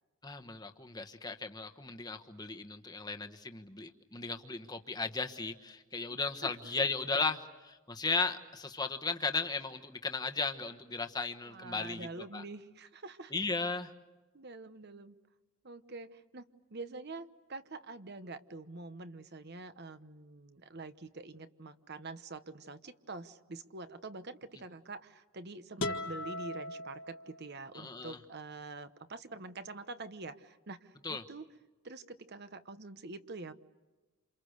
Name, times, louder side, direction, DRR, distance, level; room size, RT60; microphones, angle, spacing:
voice 1, 0.2-12.1 12.3-12.4 13.3-13.9 27.7-28.2 31.0-31.2, left 4 dB, 20° left, 6 dB, 1.3 m, -36 dB
voice 2, 6.1-6.5 11.4-13.3 14.3-15.2 15.6-16.4 16.7-31.5 31.8-33.5, right 3 dB, 50° right, 11 dB, 1.1 m, -46 dB
sound 1, 25.8-27.7, left 2 dB, 60° left, 1.8 m, -39 dB
28.5 x 28.5 x 6.7 m, 1.2 s
head